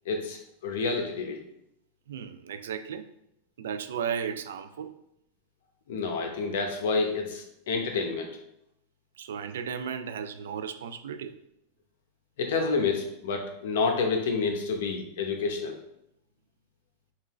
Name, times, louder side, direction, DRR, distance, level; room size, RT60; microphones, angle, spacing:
voice 1, 0.1-1.4 5.9-8.3 12.4-15.7, left 4 dB, 75° left, 3 dB, 0.8 m, -29 dB
voice 2, 2.1-3.1 3.6-4.9 9.2-11.4, right 7 dB, 90° right, 10 dB, 0.3 m, -35 dB
5.3 x 2.5 x 3.1 m, 0.80 s
supercardioid pair, 125°, 0 cm